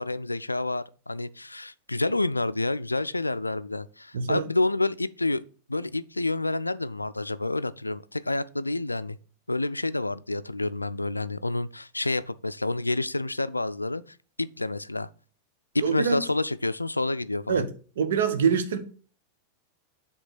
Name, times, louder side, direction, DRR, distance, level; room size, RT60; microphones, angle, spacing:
voice 1, 0.0-5.4 5.7-9.2 9.5-15.1 15.7-17.6, left 2 dB, 85° left, 0.4 m, -29 dB
voice 2, 4.1-4.5 15.8-16.2 17.5-17.7 18.0-18.8, right 6 dB, 60° right, 1.0 m, -24 dB
7.8 x 3.4 x 6.5 m
figure-of-eight pair, 90°, 0 cm